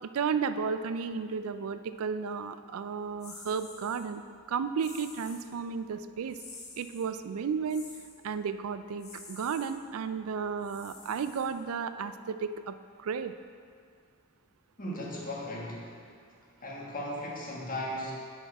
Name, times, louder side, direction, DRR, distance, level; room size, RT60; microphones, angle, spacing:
voice 1, 0.0-4.2 4.5-6.4 6.8-7.9 8.2-13.3, right 6 dB, 90° right, 11 dB, 0.4 m, -33 dB
sound 1, 3.2-4.0 4.8-5.5 6.3-7.1 7.7-8.2 9.0-9.7 10.6-11.8, left 3 dB, 85° left, 1.7 m, -49 dB
voice 2, 14.8-16.0 16.6-18.1, left 1 dB, 40° left, -3 dB, 1.5 m, -37 dB
8.2 x 5.8 x 4.7 m, 2.2 s
head